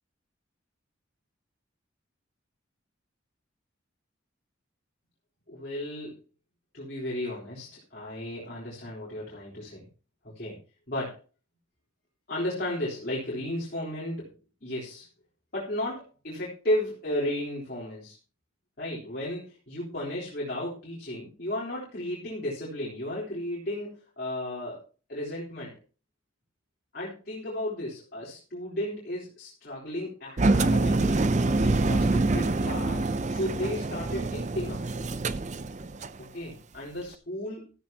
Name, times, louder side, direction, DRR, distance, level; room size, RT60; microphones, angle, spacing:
voice 1, 5.5-6.2 6.7-9.8 10.2-10.6 10.9-11.2 12.3-14.3 14.6-15.1 15.5-18.2 18.8-24.8 25.1-25.7 26.9-34.8 36.3-37.6, left 1 dB, 50° left, -5 dB, 3.7 m, -34 dB
Engine, 30.4-36.2, right 2 dB, 35° right, 0.6 m, -26 dB
14.0 x 13.0 x 2.9 m, 0.36 s
head